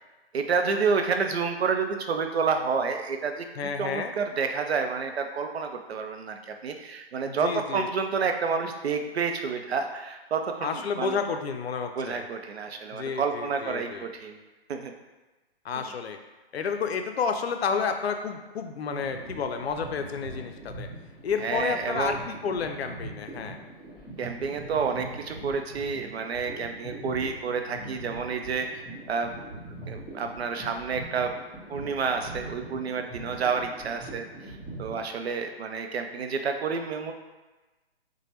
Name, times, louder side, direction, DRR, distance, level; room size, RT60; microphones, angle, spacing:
voice 1, 0.3-3.4 3.8-11.2 12.0-14.4 14.7-14.9 21.4-22.2 24.2-28.7 29.1-29.4 29.9-31.3 31.7-34.2 34.8-37.1, right 5 dB, 85° right, 5 dB, 0.5 m, -29 dB
voice 2, 3.6-4.1 7.3-7.9 10.6-12.2 12.9-14.1 15.6-16.2 16.5-20.9 21.2-23.6, left 6 dB, 85° left, 6 dB, 0.5 m, -30 dB
sound 1, 19.0-35.0, right 2 dB, 15° left, 1.2 m, -42 dB
3.1 x 2.1 x 2.9 m, 1.2 s
hypercardioid pair, 140°, 31 cm